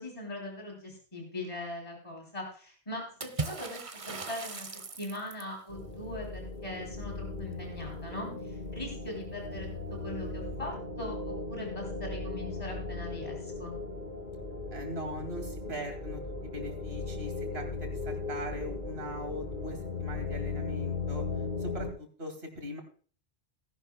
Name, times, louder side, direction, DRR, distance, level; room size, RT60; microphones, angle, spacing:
voice 1, 0.0-4.7 5.0-13.8, left 1 dB, 30° left, 1 dB, 3.3 m, -41 dB
Water / Splash splatter, 3.2-5.6, right 3 dB, 35° right, 0.7 m, -38 dB
sound 1, 5.7-21.9, left 3 dB, 50° left, 3.2 m, -37 dB
voice 2, 14.7-21.2 21.6-22.8, equal, 75° right, 4 dB, 2.6 m, -40 dB
17.0 x 11.0 x 2.2 m, 0.41 s
omnidirectional pair, 1.1 m